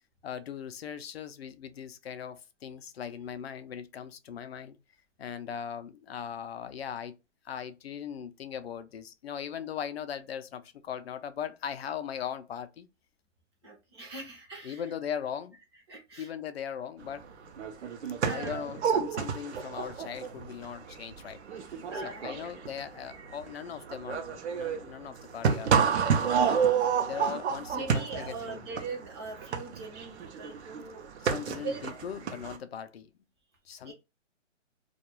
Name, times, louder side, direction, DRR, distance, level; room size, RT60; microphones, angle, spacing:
voice 1, 0.2-4.8 5.2-7.2 7.4-12.9 14.6-15.6 16.2-17.3 18.3-21.4 22.0-26.6 27.1-28.6 31.2-33.1 33.7-33.9, left 8 dB, 55° left, 0.5 m, -39 dB
voice 2, 13.6-14.8 15.9-16.3 18.2-18.7 21.9-22.5 27.3-27.4 27.7-31.1 31.6-32.0 33.8-33.9, right 3 dB, 20° right, 0.6 m, -41 dB
sound 1, 17.2-17.3 17.5-32.6, right 7 dB, 60° right, 0.7 m, -30 dB
2.3 x 2.2 x 2.9 m
hypercardioid pair, 155°, 38 cm